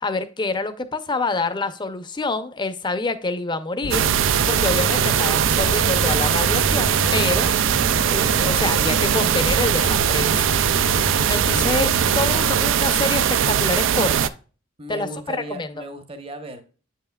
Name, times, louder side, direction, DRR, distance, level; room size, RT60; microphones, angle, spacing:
voice 1, 0.0-4.1 4.5-7.5 8.1-10.4 11.3-11.9 12.2-14.4 14.9-15.7, left 3 dB, 25° left, 10 dB, 0.6 m, -26 dB
sound 1, 3.8-12.7, left 1 dB, 85° left, 1.0 m, -30 dB
sound 2, 3.9-14.3, right 9 dB, 70° right, 0.4 m, -20 dB
voice 2, 11.4-11.7 12.3-12.5 14.8-16.6, right 1 dB, 30° right, 8 dB, 0.9 m, -36 dB
8.4 x 5.6 x 2.3 m, 0.36 s
head